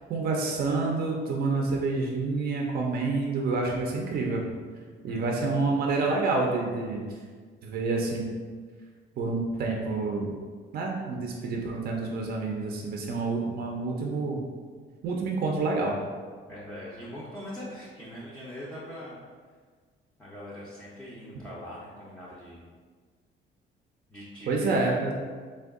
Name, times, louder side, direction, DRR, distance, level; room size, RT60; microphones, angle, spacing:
voice 1, 0.1-4.4 5.0-7.0 7.6-8.2 9.2-10.3 10.7-14.4 15.0-16.0 24.5-25.1, right 3 dB, 50° right, 0 dB, 0.5 m, -28 dB
voice 2, 5.1-5.6 16.5-19.2 20.2-22.6 24.1-24.9, equal, 5° left, -7 dB, 0.5 m, -42 dB
3.4 x 2.2 x 3.5 m, 1.6 s
cardioid pair, 145°, 20 cm